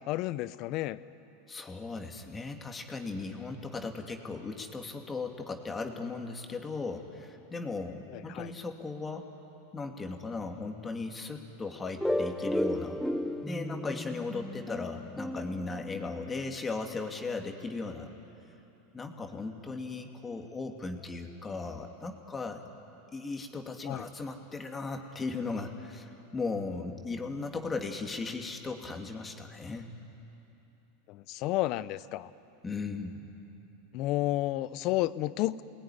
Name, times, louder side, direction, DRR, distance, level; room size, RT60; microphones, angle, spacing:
voice 1, 0.1-1.0 8.1-8.5 23.9-24.0 31.1-32.3 33.9-35.6, left 16 dB, 50° left, 16 dB, 0.8 m, -31 dB
voice 2, 1.5-9.3 9.7-13.0 13.5-18.1 18.9-22.6 23.1-29.9 32.6-33.4, left 3 dB, 15° left, 3 dB, 2.4 m, -37 dB
sound 1, 12.0-16.6, left 1 dB, ahead, 0.9 m, -34 dB
28.5 x 20.5 x 9.9 m, 3.0 s
supercardioid pair, 120°, 0 cm